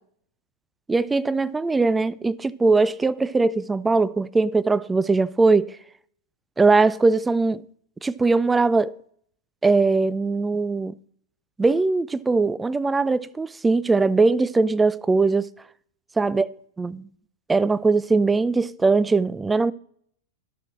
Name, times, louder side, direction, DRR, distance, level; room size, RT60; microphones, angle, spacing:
voice 1, 0.9-5.7 6.6-7.6 8.0-8.9 9.6-10.9 11.6-15.5 16.2-16.5 16.8-17.1 17.5-19.7, right 3 dB, 10° right, 0.3 m, -20 dB
13.5 x 6.0 x 3.2 m
hypercardioid pair, 105°, 0 cm